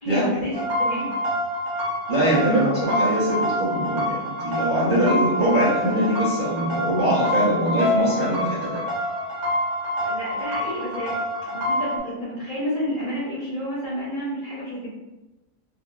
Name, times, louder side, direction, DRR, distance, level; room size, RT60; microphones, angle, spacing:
voice 1, 0.0-1.2 10.0-11.2 11.5-14.9, equal, 45° left, -9 dB, 0.7 m, -30 dB
sound 1, 0.5-12.0, left 1 dB, 80° right, 1.2 m, -26 dB
voice 2, 2.1-8.8, right 1 dB, 45° right, -11 dB, 0.7 m, -22 dB
2.6 x 2.5 x 2.3 m, 1.0 s
omnidirectional pair, 1.6 m